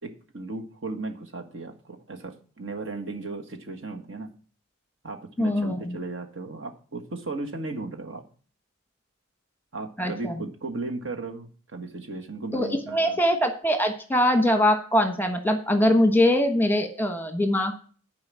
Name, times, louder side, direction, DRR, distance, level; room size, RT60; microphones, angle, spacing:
voice 1, 0.0-4.3 5.0-8.2 9.7-13.2, right 3 dB, 60° right, 4 dB, 1.6 m, -36 dB
voice 2, 5.4-6.0 10.0-10.3 12.5-17.9, left 1 dB, 10° left, 6 dB, 1.2 m, -22 dB
10.5 x 4.9 x 7.5 m, 0.41 s
head